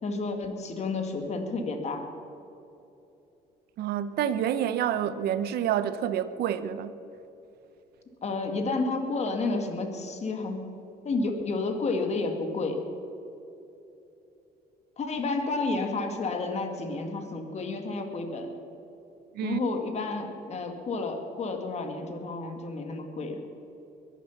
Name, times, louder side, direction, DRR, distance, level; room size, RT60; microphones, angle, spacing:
voice 1, 0.0-2.1 8.2-10.6 11.0-12.8 15.0-18.5 19.4-23.4, left 3 dB, 40° left, 2.2 m, -31 dB
voice 2, 3.8-6.9 19.3-19.6, right 10 dB, 70° right, 0.8 m, -28 dB
22.0 x 11.0 x 5.9 m
cardioid pair, 110°, 17 cm